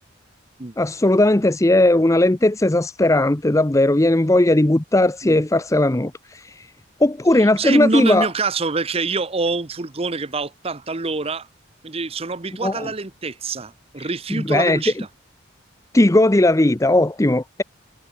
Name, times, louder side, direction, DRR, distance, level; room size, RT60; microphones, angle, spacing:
voice 1, 0.8-6.1 7.0-8.3 12.6-12.9 14.3-14.9 15.9-17.6, left 1 dB, 15° left, 0.6 m, -17 dB
voice 2, 7.4-11.5 11.8-15.1, right 3 dB, 30° right, 0.9 m, -26 dB
head